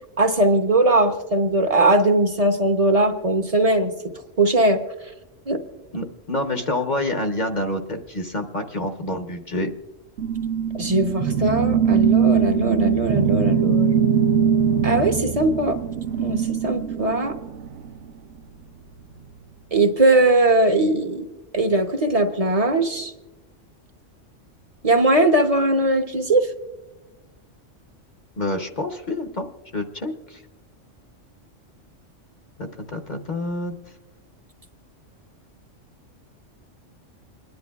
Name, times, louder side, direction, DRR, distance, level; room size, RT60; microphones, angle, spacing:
voice 1, 0.2-3.9 4.4-4.8 5.5-5.6 10.8-13.9 14.8-15.8 16.2-17.3 19.7-21.3 21.5-23.1 24.8-26.5, right 2 dB, 35° right, 7 dB, 0.8 m, -20 dB
voice 2, 5.9-9.7 28.4-29.5 29.7-30.4 32.6-33.7, left 1 dB, 40° left, 5 dB, 0.8 m, -27 dB
sound 1, 10.2-18.0, right 8 dB, 70° right, 1.0 m, -21 dB
28.0 x 10.5 x 2.3 m, 1.1 s
omnidirectional pair, 1.3 m